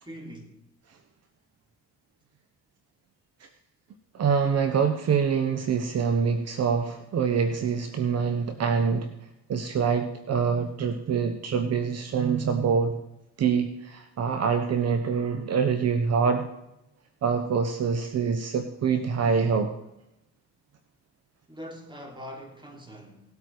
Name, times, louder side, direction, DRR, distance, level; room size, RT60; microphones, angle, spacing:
voice 1, 0.0-0.6 21.5-23.2, equal, 15° right, 3.4 m, -42 dB
voice 2, 4.1-9.1 9.5-12.9 13.4-16.5 17.2-19.7, right 6 dB, 55° right, 1.1 m, -25 dB
18.5 x 8.4 x 4.8 m
cardioid pair, 90°, 30 cm